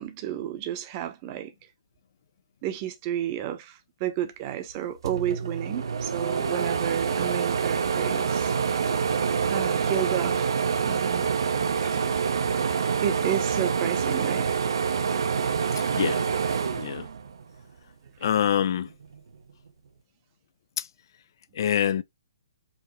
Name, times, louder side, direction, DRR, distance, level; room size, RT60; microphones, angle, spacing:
voice 1, 0.0-1.5 2.6-3.7 4.0-8.5 9.5-10.5 10.9-11.3 11.8-12.0 13.0-14.5 18.2-18.3, right 11 dB, 35° right, 0.8 m, -31 dB
sound 1, 4.7-4.8 5.0-17.6 18.1-19.2, right 6 dB, 75° right, 0.7 m, -26 dB
voice 2, 18.2-18.9 20.8-20.9 21.6-22.0, left 9 dB, 55° left, 0.4 m, -25 dB
4.9 x 2.5 x 3.0 m
hypercardioid pair, 140°, 2 cm